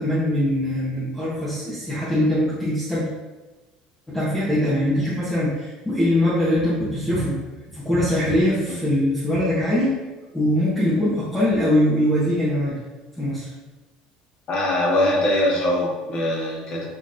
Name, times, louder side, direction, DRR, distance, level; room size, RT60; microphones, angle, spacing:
voice 1, 0.0-3.1 4.1-7.4 7.7-10.0 10.3-12.8 13.2-13.5, left 1 dB, 5° left, -10 dB, 0.9 m, -22 dB
voice 2, 14.5-16.9, left 1 dB, 40° left, -3 dB, 1.3 m, -22 dB
5.9 x 3.0 x 2.5 m, 1.2 s
cardioid pair, 155°, 2 cm